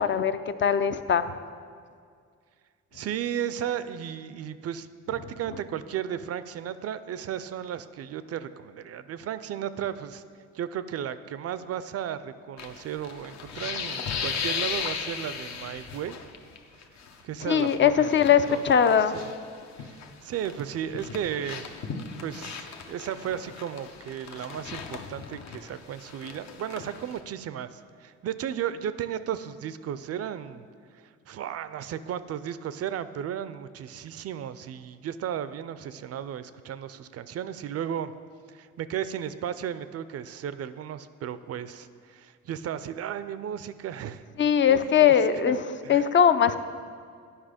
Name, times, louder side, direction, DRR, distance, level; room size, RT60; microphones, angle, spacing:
voice 1, 0.0-1.3 17.5-19.1 44.4-45.6 45.9-46.6, left 8 dB, 40° left, 11 dB, 0.4 m, -21 dB
voice 2, 2.9-10.2 10.5-16.2 17.2-19.3 19.8-21.7 22.2-30.7 31.3-38.1 38.5-44.3 44.6-45.6 45.8-46.0, right 9 dB, 55° right, 13 dB, 0.4 m, -34 dB
sound 1, 12.6-16.6 16.8-17.1 17.5-20.1 20.4-27.2, left 6 dB, 65° left, 0.8 m, -36 dB
9.8 x 5.6 x 5.0 m, 2.1 s
cardioid pair, 90°, 30 cm